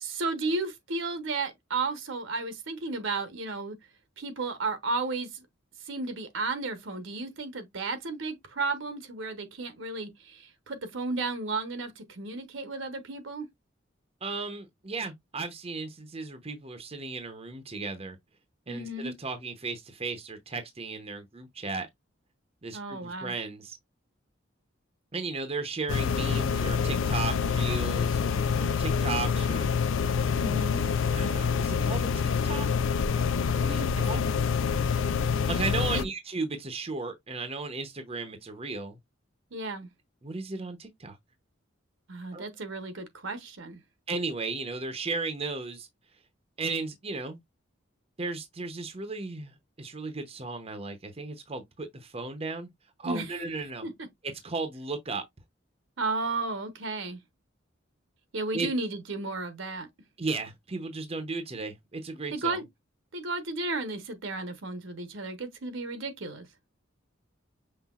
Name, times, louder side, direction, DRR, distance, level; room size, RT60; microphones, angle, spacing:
voice 1, 0.0-3.8 4.2-5.4 5.9-13.5 18.7-19.1 22.7-23.3 30.3-30.8 34.1-34.3 35.9-36.0 39.5-39.9 42.1-43.8 53.0-53.5 53.8-54.1 56.0-57.2 58.3-59.9 62.3-62.7 63.1-66.5, right 3 dB, 70° right, 1.0 m, -33 dB
voice 2, 14.2-18.2 18.7-21.9 22.6-23.8 25.1-29.7 31.0-32.7 33.6-34.2 35.5-39.0 40.2-41.2 42.3-42.5 44.1-45.9 46.6-47.4 48.2-52.7 53.0-53.9 54.2-55.2 58.5-58.7 60.2-62.6, right 3 dB, 30° right, 0.7 m, -35 dB
sound 1, 25.9-36.0, left 6 dB, 75° left, 0.4 m, -26 dB
5.7 x 3.2 x 2.3 m
head